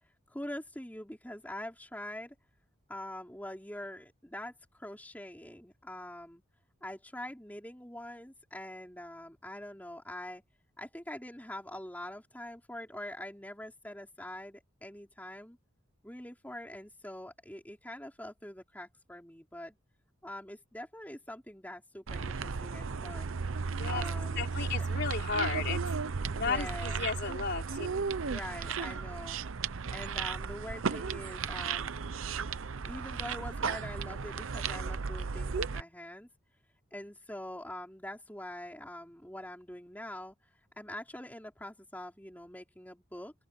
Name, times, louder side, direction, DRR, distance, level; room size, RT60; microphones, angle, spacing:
voice 1, 0.3-2.4 2.9-6.4 6.8-10.4 10.8-15.6 16.0-19.7 20.2-23.4 23.9-24.5 24.7-24.8 26.3-27.1 28.2-29.4 29.9-31.9 32.8-36.3 36.9-40.4 40.8-43.3, left 1 dB, 10° left, 4.0 m, -44 dB
sound 1, 22.1-35.8, right 5 dB, 80° right, 0.7 m, -35 dB
voice 2, 24.4-25.8 26.4-27.9, left 5 dB, 55° left, 3.7 m, -34 dB
open air
head